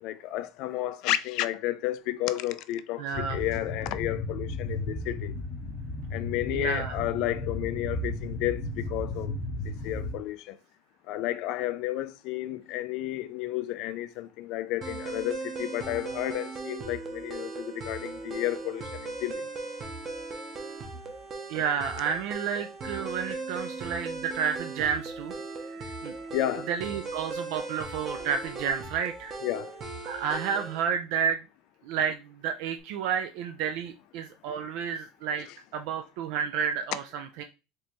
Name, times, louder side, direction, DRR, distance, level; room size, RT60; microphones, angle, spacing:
voice 1, 0.0-5.3 6.1-9.3 9.8-10.5 11.1-19.4 26.3-26.7 29.4-29.7, left 15 dB, 50° left, 0.3 m, -32 dB
voice 2, 3.0-3.4 6.5-6.9 21.5-25.3 25.7-26.1 26.7-29.3 30.0-31.4 31.8-35.5 35.7-37.4, right 7 dB, 60° right, 0.3 m, -31 dB
sound 1, 3.1-10.2, left 2 dB, 25° left, 0.7 m, -34 dB
sound 2, 14.8-30.8, right 3 dB, 25° right, 0.7 m, -38 dB
4.3 x 3.2 x 2.9 m
cardioid pair, 170°, 0 cm